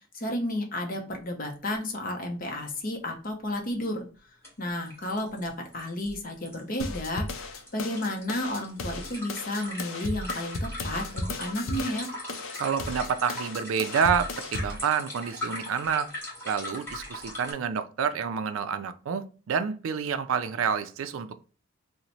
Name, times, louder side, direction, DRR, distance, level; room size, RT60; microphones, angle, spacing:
voice 1, 0.1-4.1 4.6-12.1, left 1 dB, 45° left, 0.7 m, -32 dB
sound 1, 1.7-1.8 2.0-2.1 3.9-4.0 4.4-4.5 4.8-17.5, left 1 dB, 10° left, 1.5 m, -40 dB
sound 2, 6.8-14.8, left 2 dB, 85° left, 0.5 m, -35 dB
voice 2, 12.6-16.1 16.4-21.4, right 7 dB, 80° right, 0.4 m, -28 dB
2.9 x 2.1 x 3.9 m
head